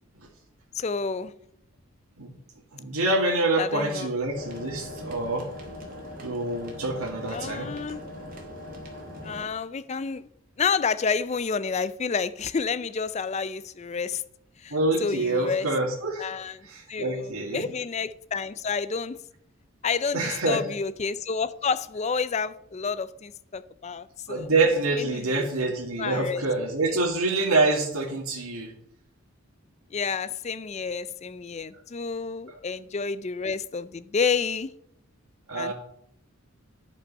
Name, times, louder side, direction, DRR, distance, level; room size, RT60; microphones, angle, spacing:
voice 1, 0.7-1.3 3.6-4.1 7.3-8.0 9.2-10.3 10.6-14.2 14.6-14.7 15.0-15.7 16.2-19.2 19.8-24.5 25.1-25.5 26.0-26.4 29.9-34.7 35.5-35.7, left 5 dB, 30° left, 0.4 m, -29 dB
voice 2, 2.7-5.5 6.2-7.7 14.7-16.3 16.6-17.7 20.1-20.6 24.3-28.7 35.5-35.7, right 2 dB, 85° right, 2.0 m, -26 dB
sound 1, 4.3-9.5, left 1 dB, 40° right, 2.1 m, -40 dB
10.5 x 5.4 x 5.4 m
head